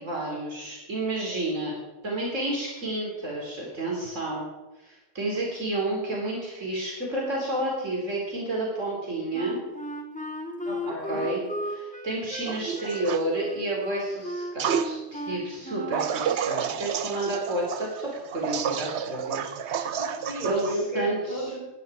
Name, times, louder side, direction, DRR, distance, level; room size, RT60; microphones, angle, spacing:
voice 1, 0.0-1.7 2.0-4.5 4.8-9.6 11.1-11.4 11.7-19.9 20.4-20.6 20.9-21.5, right 2 dB, 85° right, -3 dB, 4.1 m, -30 dB
Wind instrument woodwind instrument, 9.3-16.1, left 1 dB, 5° left, 1.6 m, -35 dB
voice 2, 10.6-11.2 20.0-21.7, right 1 dB, 35° right, -5 dB, 6.9 m, -33 dB
sound 1, 12.5-13.2 14.6-14.9 15.9-20.7, right 8 dB, 65° right, 1.0 m, -30 dB
18.5 x 10.5 x 4.9 m, 1.1 s
omnidirectional pair, 1.3 m